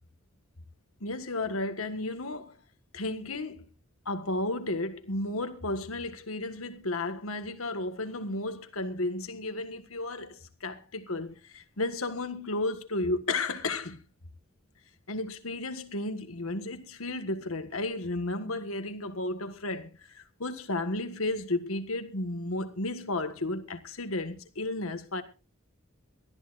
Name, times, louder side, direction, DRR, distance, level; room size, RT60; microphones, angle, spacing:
voice 1, 1.0-2.6 2.9-3.7 4.0-14.0 15.1-25.2, left 2 dB, 90° left, 1.6 m, -33 dB
23.0 x 14.0 x 2.5 m
head